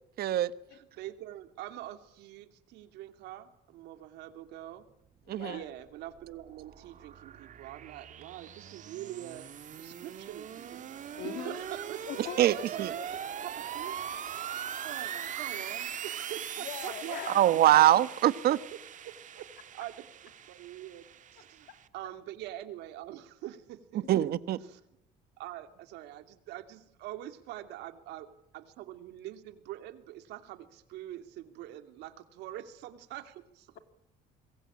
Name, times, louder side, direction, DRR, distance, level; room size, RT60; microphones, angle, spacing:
voice 1, 0.2-0.5 5.3-5.6 12.4-12.9 17.3-18.6 24.1-24.6, right 13 dB, 65° right, 14 dB, 1.3 m, -23 dB
voice 2, 0.7-4.9 5.4-9.5 9.7-10.8 11.4-12.0 12.4-13.0 13.4-14.1 14.8-17.6 18.7-18.8 19.0-19.5 19.7-20.0 20.5-21.1 21.3-24.3 24.6-24.8 25.4-28.3 28.5-33.8, right 13 dB, 85° right, 8 dB, 2.8 m, -44 dB
voice 3, 5.2-5.7 11.2-11.6 12.0-12.7 13.0-13.5 16.6-17.5 21.7-21.8 24.0-24.2, left 10 dB, 75° left, 8 dB, 3.1 m, -42 dB
sound 1, 5.8-21.9, right 9 dB, 50° right, 1.6 m, -41 dB
26.5 x 22.0 x 8.7 m, 0.78 s
cardioid pair, 110°, 17 cm